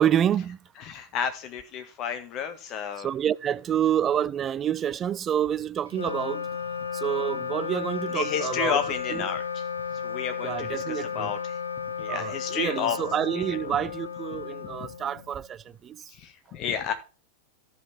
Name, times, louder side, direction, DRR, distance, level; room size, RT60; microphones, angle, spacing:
voice 1, 0.0-0.6 3.0-6.5 6.9-8.8 9.1-9.2 10.4-11.3 12.1-16.0, right 9 dB, 25° right, 0.3 m, -28 dB
voice 2, 0.8-3.1 8.1-11.6 12.0-13.0 13.3-13.8 14.3-14.9 16.1-16.9, left 8 dB, 35° left, 1.6 m, -32 dB
Wind instrument woodwind instrument, 5.9-15.5, left 7 dB, 75° left, 0.7 m, -34 dB
14.0 x 5.7 x 3.4 m
figure-of-eight pair, 90°, 0 cm